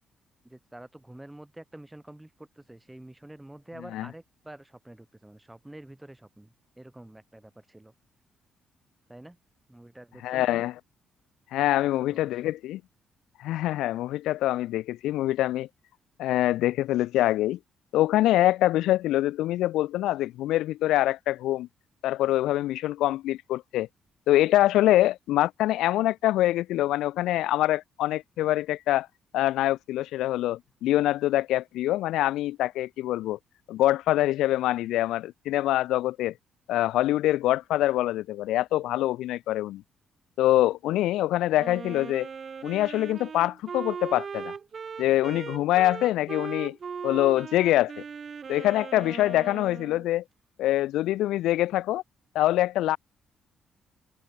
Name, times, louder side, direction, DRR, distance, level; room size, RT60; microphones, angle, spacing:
voice 1, 0.4-7.9 9.1-9.4 9.7-10.7 11.8-12.5, right 1 dB, 10° right, 6.7 m, -48 dB
voice 2, 10.2-10.7 11.5-12.8 13.4-15.7 16.2-17.6 17.9-21.7 22.0-23.9 24.3-29.1 29.3-33.4 33.7-36.3 36.7-39.8 40.4-42.3 42.6-44.5 45.0-46.8 47.0-48.0 48.5-50.2 50.6-52.0 52.3-53.0, left 15 dB, 90° left, 1.2 m, -24 dB
Wind instrument woodwind instrument, 41.6-50.1, right 6 dB, 45° right, 1.2 m, -38 dB
cardioid pair, 90°, 0 cm